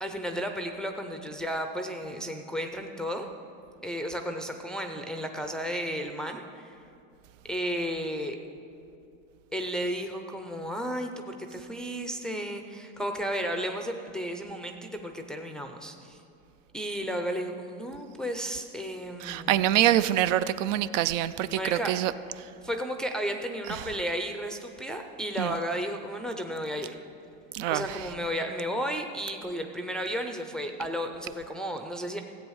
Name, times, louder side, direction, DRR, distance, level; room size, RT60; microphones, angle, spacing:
voice 1, 0.0-3.3 3.8-6.8 7.5-8.4 9.5-16.2 16.7-19.7 21.6-21.9 22.6-27.0 27.7-32.2, equal, ahead, 3 dB, 0.4 m, -33 dB
voice 2, 19.2-22.1 25.4-25.5 27.5-28.0, right 12 dB, 70° right, 14 dB, 0.6 m, -25 dB
15.5 x 8.1 x 6.3 m, 2.6 s
supercardioid pair, 140°, 39 cm